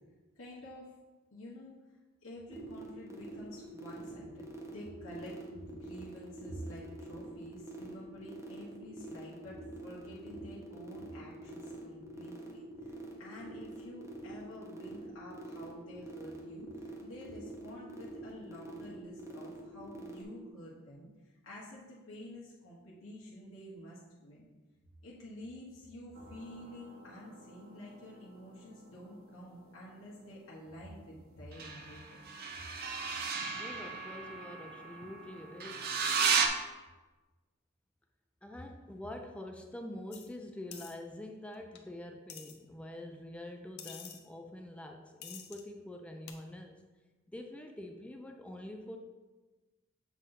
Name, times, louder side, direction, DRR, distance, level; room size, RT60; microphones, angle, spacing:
voice 1, 0.4-0.9 1.3-1.8 2.2-12.9 13.2-21.1 21.4-24.5 25.0-32.2, equal, 75° left, -6 dB, 1.1 m, -49 dB
sound 1, 2.5-20.2, right 2 dB, 15° right, 0.9 m, -46 dB
sound 2, 26.2-29.2 31.5-36.5, right 5 dB, 50° right, 0.6 m, -36 dB
voice 2, 33.5-35.9 38.4-46.8 47.3-49.0, left 1 dB, 5° left, 3 dB, 0.3 m, -46 dB
sound 3, 40.1-40.3 40.7-41.0 41.8-41.9 42.3-42.6 43.8-44.2 45.2-45.6 46.3-46.4, left 8 dB, 55° left, 0.7 m, -47 dB
7.2 x 2.6 x 5.6 m, 1.2 s
head